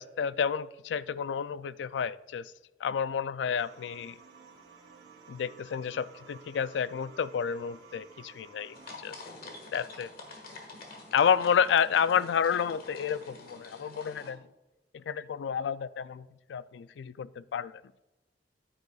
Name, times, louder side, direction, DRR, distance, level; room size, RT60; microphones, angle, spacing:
voice 1, 0.0-2.5 2.8-4.2 5.3-8.7 9.0-9.1 9.7-10.1 11.1-14.4 14.9-17.7, left 7 dB, 85° left, 17 dB, 0.3 m, -30 dB
sound 1, 3.6-8.9, right 5 dB, 75° right, 1.9 m, -54 dB
sound 2, 8.7-14.3, left 3 dB, 55° left, 1.7 m, -47 dB
9.4 x 9.4 x 2.3 m, 1.0 s
head